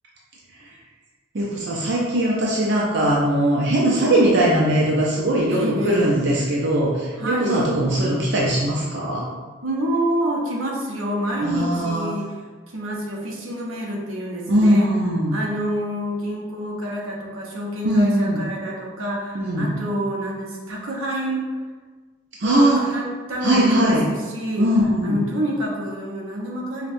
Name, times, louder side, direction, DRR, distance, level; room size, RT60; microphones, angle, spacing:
voice 1, 1.3-9.2 11.4-12.1 14.5-15.4 17.8-18.4 19.3-19.7 22.4-22.8 23.4-24.1 24.6-25.2, right 1 dB, 60° right, -4 dB, 0.5 m, -20 dB
voice 2, 5.5-6.1 7.2-7.7 9.6-12.4 12.7-14.9 15.3-21.5 22.4-24.7 25.0-26.9, equal, 90° right, -3 dB, 0.8 m, -27 dB
5.2 x 2.2 x 2.6 m, 1.4 s
head